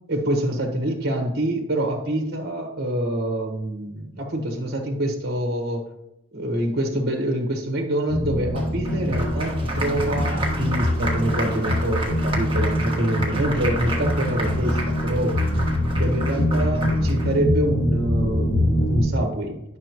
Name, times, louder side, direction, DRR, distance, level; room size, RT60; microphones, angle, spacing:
voice 1, 0.1-5.9 6.3-15.4 16.0-19.6, right 1 dB, 50° right, 3 dB, 1.4 m, -26 dB
sound 1, 8.1-19.0, left 1 dB, 70° left, 3.0 m, -24 dB
Applause, 8.6-17.3, right 2 dB, 25° right, 1.5 m, -32 dB
11.0 x 6.2 x 3.0 m, 0.85 s
head